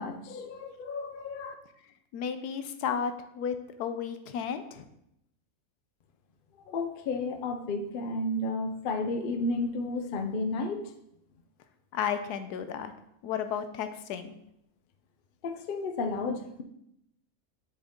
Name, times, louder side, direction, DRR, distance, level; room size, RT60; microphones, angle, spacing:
voice 1, 0.0-1.5 6.7-10.9 15.4-16.6, left 2 dB, 60° left, 7 dB, 0.5 m, -32 dB
voice 2, 2.1-4.9 11.9-12.9 13.2-14.4, left 7 dB, 85° left, 9 dB, 1.2 m, -33 dB
7.4 x 4.6 x 3.6 m, 0.78 s
omnidirectional pair, 1.6 m